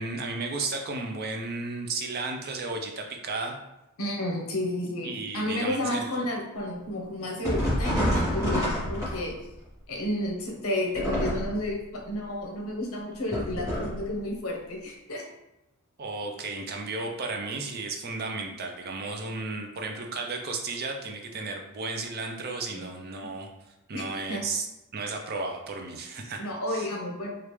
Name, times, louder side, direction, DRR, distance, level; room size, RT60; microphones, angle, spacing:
voice 1, 0.0-3.6 5.0-6.1 16.0-23.5 23.9-24.6 24.9-26.9, right 3 dB, 45° right, 3 dB, 0.4 m, -34 dB
voice 2, 4.0-9.3 9.9-15.2 22.8-22.9 23.9-24.0 24.3-24.4 26.4-27.3, left 1 dB, 75° left, 0 dB, 0.8 m, -31 dB
sound 1, 7.4-9.6 10.9-11.7 13.3-14.1, equal, 15° right, 1.1 m, -28 dB
3.2 x 2.4 x 3.0 m, 0.92 s
head